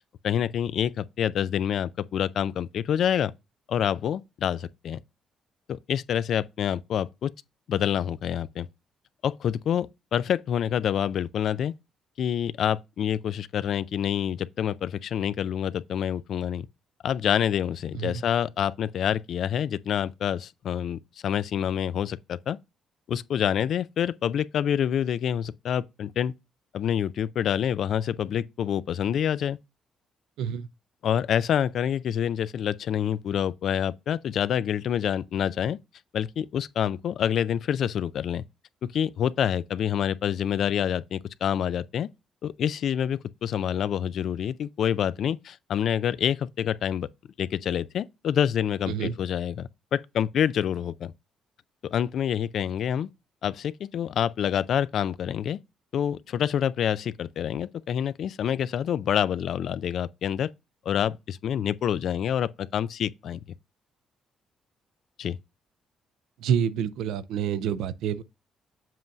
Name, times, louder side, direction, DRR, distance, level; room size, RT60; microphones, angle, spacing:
voice 1, 0.2-3.3 3.7-5.0 5.7-7.3 7.7-8.7 9.2-11.7 12.2-16.7 17.0-22.6 23.1-26.3 26.7-29.6 31.0-35.8 36.1-38.4 38.8-42.1 42.4-47.1 47.4-51.1 51.9-53.1 53.4-55.6 55.9-60.5 60.9-63.4 65.2-65.4, left 9 dB, 65° left, 0.3 m, -27 dB
voice 2, 66.4-68.2, right 8 dB, 90° right, 0.4 m, -28 dB
7.5 x 2.6 x 5.8 m
cardioid pair, 90°, 0 cm